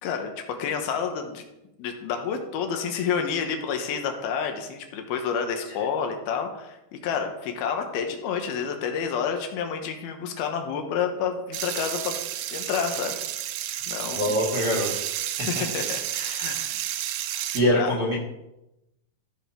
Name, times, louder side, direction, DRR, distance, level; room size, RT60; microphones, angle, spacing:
voice 1, 0.0-1.4 1.8-12.2 12.5-13.2 13.9-14.3 15.5-16.8 17.3-17.5 17.8-17.9, left 7 dB, 80° left, 5 dB, 2.9 m, -29 dB
sound 1, 11.5-17.6, right 12 dB, 85° right, 2.5 m, -31 dB
voice 2, 14.1-14.9 15.4-15.6 17.5-18.2, left 1 dB, 40° right, -4 dB, 1.5 m, -24 dB
14.5 x 5.3 x 4.5 m, 0.91 s
omnidirectional pair, 4.4 m